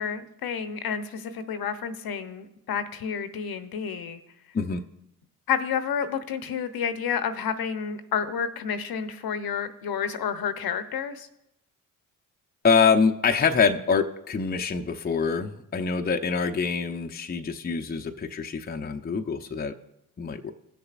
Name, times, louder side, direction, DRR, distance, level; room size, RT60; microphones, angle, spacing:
voice 1, 0.0-4.2 5.5-11.3, left 7 dB, 60° left, 10 dB, 0.8 m, -30 dB
voice 2, 12.6-19.7 20.2-20.5, left 5 dB, 20° left, 5 dB, 0.6 m, -25 dB
17.5 x 6.7 x 2.5 m, 0.84 s
supercardioid pair, 50°, 42 cm